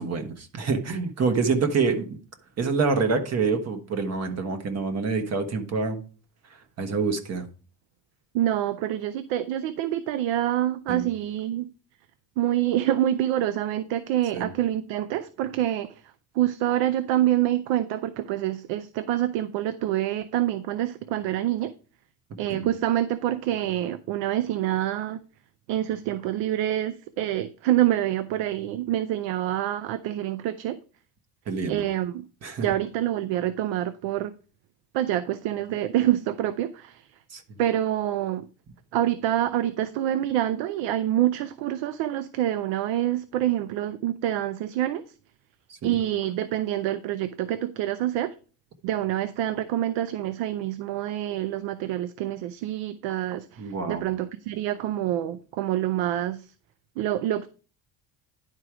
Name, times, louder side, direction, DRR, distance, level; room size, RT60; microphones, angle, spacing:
voice 1, 0.0-2.2 2.6-6.0 6.8-7.4 10.9-11.0 14.3-14.5 22.5-22.6 31.5-31.8 32.4-32.6 37.3-37.6 45.8-45.9 53.6-54.0, right 4 dB, 35° right, 1.3 m, -26 dB
voice 2, 8.3-11.7 12.4-15.9 16.3-21.7 22.4-25.2 25.7-30.8 31.7-32.2 32.6-34.3 34.9-37.0 37.6-38.5 38.9-45.0 45.8-48.3 48.8-56.5 57.0-57.5, right 12 dB, 90° right, 0.7 m, -26 dB
10.5 x 4.6 x 4.9 m
cardioid pair, 155°, 43 cm